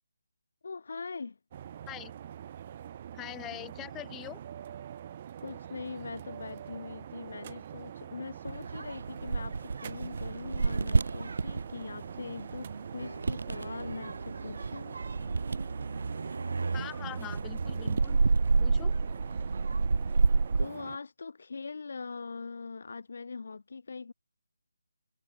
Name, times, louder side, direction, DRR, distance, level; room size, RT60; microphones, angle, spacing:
voice 1, 0.6-1.4 5.4-15.0 20.6-24.1, left 4 dB, 50° left, 2.1 m, -42 dB
sound 1, 1.5-21.0, right 9 dB, 30° right, 1.4 m, -45 dB
voice 2, 3.1-4.4 16.7-18.2 18.6-18.9, left 15 dB, 10° left, 5.0 m, -43 dB
sound 2, 8.5-20.7, right 4 dB, 55° right, 0.4 m, -30 dB
sound 3, 11.9-17.6, right 2 dB, 75° right, 4.6 m, -52 dB
figure-of-eight pair, 150°, 0 cm